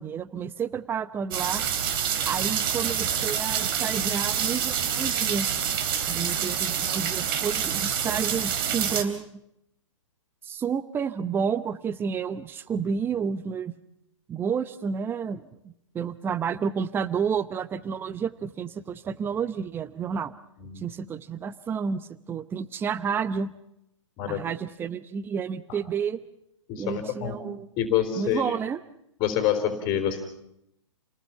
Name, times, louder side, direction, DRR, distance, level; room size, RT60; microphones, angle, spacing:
voice 1, 0.0-1.6 2.3-5.5 6.1-9.3 10.4-13.7 14.3-20.4 20.8-23.5 24.3-26.2 26.8-27.7 28.2-28.8, right 6 dB, 15° right, 14 dB, 0.9 m, -30 dB
sound 1, 1.3-9.0, right 8 dB, 45° right, 3.3 m, -27 dB
voice 2, 26.7-27.4 27.8-28.5 29.2-30.2, left 10 dB, 30° left, 6 dB, 3.9 m, -27 dB
29.5 x 19.5 x 5.8 m, 0.81 s
hypercardioid pair, 135°, 16 cm